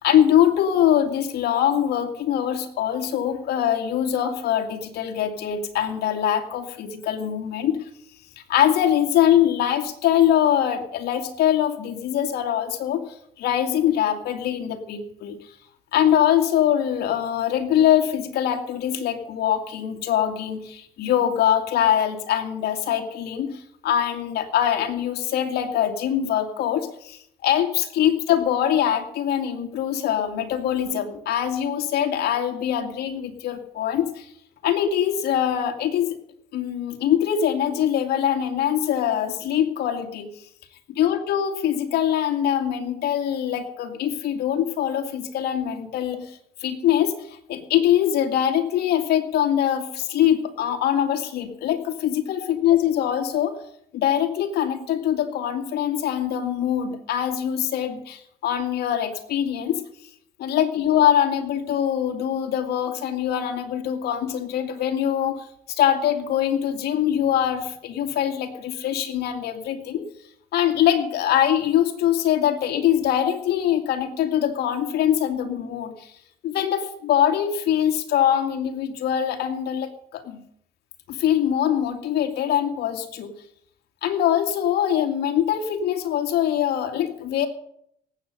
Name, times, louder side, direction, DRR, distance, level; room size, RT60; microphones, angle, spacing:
voice 1, 0.0-7.8 8.5-13.0 13.4-15.4 15.9-34.3 34.6-36.1 36.5-40.3 41.0-53.6 53.9-59.8 60.4-70.0 70.5-76.1 76.4-80.4 81.1-83.3 84.0-87.5, left 10 dB, 70° left, 3 dB, 2.3 m, -23 dB
18.5 x 8.3 x 6.7 m, 0.71 s
cardioid pair, 110°, 17 cm